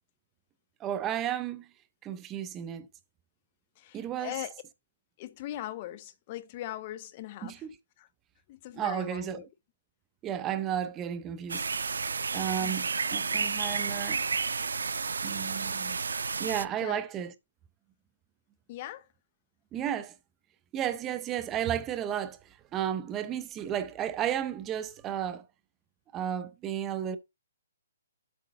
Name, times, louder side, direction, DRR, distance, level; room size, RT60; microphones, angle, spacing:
voice 1, 0.8-1.7 2.0-2.9 3.9-4.3 7.4-7.7 8.8-9.4 10.2-11.6 12.3-14.2 15.2-16.0 16.4-17.3 19.7-20.1 20.7-22.4 22.7-25.4 26.1-27.2, right 10 dB, 15° right, 0.6 m, -33 dB
voice 2, 3.8-4.6 5.2-7.7 8.0-8.1 8.5-9.5 12.6-12.8 16.8-17.0 18.7-19.1, left 14 dB, 30° left, 0.5 m, -40 dB
sound 1, 11.5-16.6, right 5 dB, 90° right, 0.4 m, -31 dB
7.8 x 3.9 x 5.3 m
hypercardioid pair, 160°, 0 cm